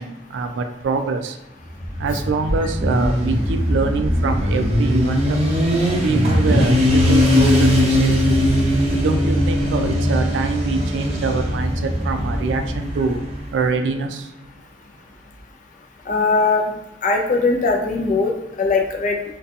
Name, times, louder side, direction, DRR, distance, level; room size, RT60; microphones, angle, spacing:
voice 1, 0.0-1.4 2.0-5.4 6.0-8.5 8.9-14.3, right 4 dB, 85° right, 6 dB, 0.3 m, -24 dB
Motorcycle, 1.8-13.5, left 1 dB, 35° right, 0.5 m, -20 dB
sound 1, 6.9-12.7, equal, ahead, 0.9 m, -25 dB
voice 2, 16.1-16.6 17.0-18.3 18.6-19.2, left 3 dB, 45° left, 1 dB, 0.4 m, -19 dB
2.6 x 2.2 x 2.4 m, 0.94 s
head